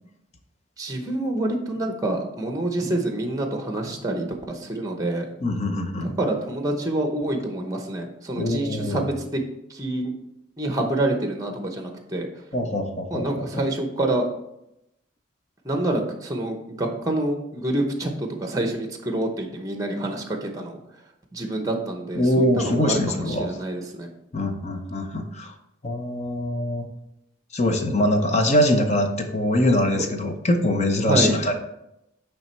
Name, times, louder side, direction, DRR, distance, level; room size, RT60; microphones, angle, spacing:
voice 1, 0.8-5.3 6.0-9.4 9.7-10.1 10.6-12.3 13.1-14.2 15.6-20.8 21.3-23.0 23.3-24.1 31.1-31.3, right 1 dB, 15° right, 4 dB, 0.8 m, -27 dB
voice 2, 5.4-6.2 8.3-9.0 12.5-13.6 22.1-23.5 24.3-25.5 25.8-26.8 27.5-31.5, left 1 dB, 35° left, 5 dB, 0.7 m, -23 dB
8.9 x 3.4 x 4.4 m, 0.85 s
head